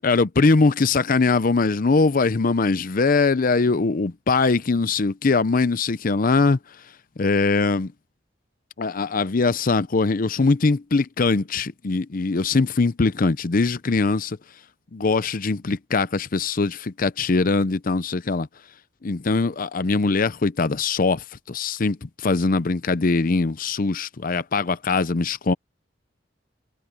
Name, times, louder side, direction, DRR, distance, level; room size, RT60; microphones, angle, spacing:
voice 1, 0.0-6.6 7.2-7.9 8.8-14.4 14.9-18.5 19.0-25.5, left 3 dB, 50° left, 0.6 m, -21 dB
head